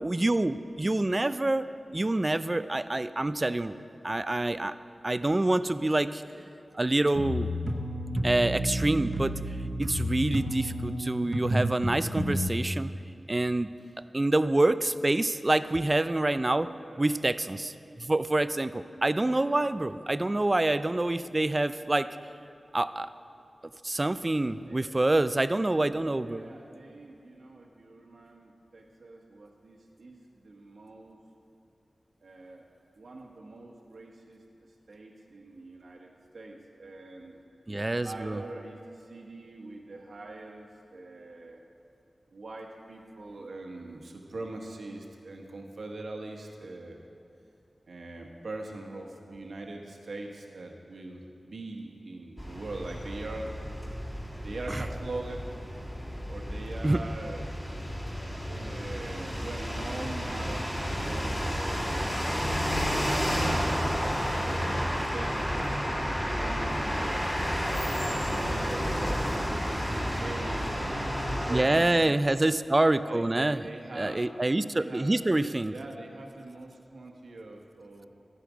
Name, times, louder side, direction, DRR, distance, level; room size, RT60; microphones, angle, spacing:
voice 1, 0.0-1.7 1.9-3.8 4.0-4.7 5.0-6.2 6.7-7.6 8.2-9.3 9.8-12.9 13.3-13.7 14.1-16.7 17.0-22.1 22.7-23.1 23.8-26.5 37.7-38.4 54.7-54.8 56.8-57.0 71.5-73.7 74.0-75.7, right 2 dB, 30° right, 13 dB, 0.4 m, -26 dB
sound 1, 7.2-12.5, equal, 55° right, 1.0 m, -31 dB
voice 2, 24.6-25.0 25.2-25.4 26.2-31.2 32.2-32.7 32.9-34.4 34.9-37.4 38.0-41.6 42.3-47.0 47.9-53.6 54.4-55.4 56.3-57.4 57.7-62.5 62.8-63.8 64.5-67.2 68.1-72.2 73.0-74.2 74.8-75.1 75.7-78.1, right 2 dB, 80° right, 1 dB, 1.2 m, -43 dB
sound 2, 52.4-71.6, equal, 15° left, 3.1 m, -31 dB
13.0 x 10.0 x 5.0 m, 2.6 s
wide cardioid pair, 75°, 0 cm